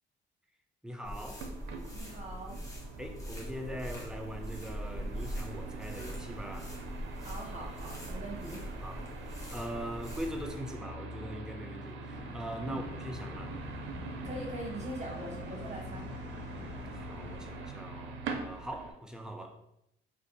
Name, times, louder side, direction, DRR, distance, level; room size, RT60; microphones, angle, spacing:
voice 1, 0.8-1.5 3.0-6.7 8.8-9.1 9.5-13.5 16.5-19.6, equal, 5° right, 3 dB, 0.5 m, -42 dB
sound 1, 1.0-10.6, equal, 15° left, 1.0 m, -42 dB
sound 2, 1.4-18.9, right 3 dB, 75° right, 0.5 m, -43 dB
voice 2, 1.9-2.6 7.2-8.6 12.6-12.8 14.2-16.1, right 2 dB, 35° right, -1 dB, 0.9 m, -42 dB
sound 3, 12.1-17.4, left 2 dB, 60° left, 0.8 m, -48 dB
2.6 x 2.6 x 3.9 m, 0.78 s
cardioid pair, 90°, 20 cm